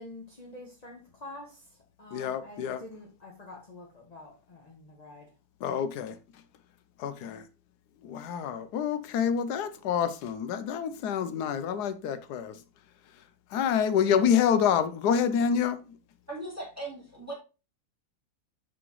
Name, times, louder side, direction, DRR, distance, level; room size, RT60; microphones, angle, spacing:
voice 1, 0.0-5.3, left 2 dB, 30° left, 1.1 m, -47 dB
voice 2, 2.1-2.8 5.6-6.1 7.0-7.4 8.0-12.5 13.5-15.8, left 8 dB, 85° left, 1.2 m, -27 dB
voice 3, 16.3-17.3, right 2 dB, 10° right, 2.3 m, -38 dB
6.1 x 5.9 x 3.0 m
omnidirectional pair, 1.7 m